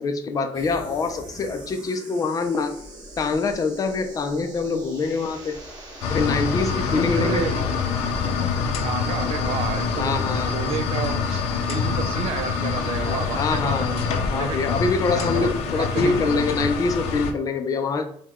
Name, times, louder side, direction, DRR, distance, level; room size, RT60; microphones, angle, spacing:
voice 1, 0.0-2.8 3.2-5.6 6.1-7.4 10.0-10.6 13.0-14.0 14.3-18.1, left 4 dB, 35° left, 7 dB, 0.5 m, -25 dB
sound 1, 0.5-17.4, right 1 dB, 35° right, 1.3 m, -43 dB
sound 2, 6.0-17.3, left 5 dB, 80° left, 0.6 m, -25 dB
voice 2, 7.1-7.6 8.8-11.4 11.7-13.8 14.3-14.6 15.1-16.2 17.0-17.1, right 7 dB, 70° right, 8 dB, 0.5 m, -30 dB
4.7 x 2.3 x 3.6 m, 0.64 s
cardioid pair, 125°, 10 cm